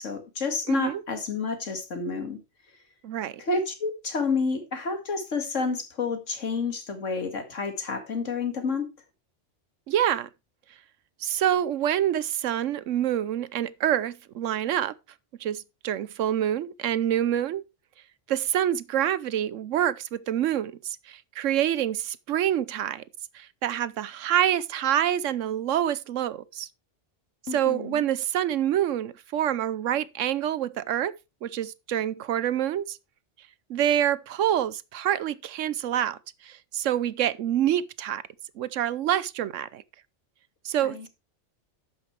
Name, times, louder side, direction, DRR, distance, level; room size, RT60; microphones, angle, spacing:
voice 1, 0.0-2.4 3.4-8.9 27.5-28.0 40.8-41.1, left 4 dB, 85° left, 2.4 m, -29 dB
voice 2, 0.7-1.0 3.0-3.4 9.9-10.3 11.2-14.9 15.4-17.6 18.3-23.0 23.3-26.7 27.5-31.1 31.4-33.0 33.7-38.2 38.6-39.8 40.6-41.1, right 11 dB, 90° right, 1.1 m, -26 dB
11.5 x 9.0 x 3.3 m
omnidirectional pair, 1.3 m